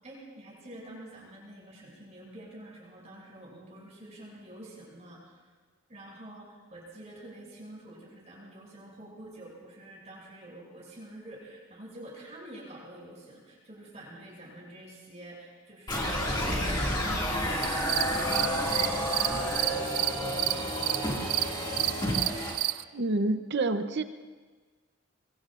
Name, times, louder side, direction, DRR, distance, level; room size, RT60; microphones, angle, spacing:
voice 1, 0.0-5.5 5.9-22.4, right 1 dB, 30° right, -5 dB, 6.6 m, -47 dB
sound 1, 15.9-22.6, left 1 dB, 20° left, 2.2 m, -30 dB
sound 2, 17.6-22.8, right 17 dB, 85° right, 0.3 m, -31 dB
voice 2, 22.9-24.0, right 2 dB, 50° right, 9 dB, 0.7 m, -28 dB
23.5 x 23.0 x 2.5 m, 1.4 s
head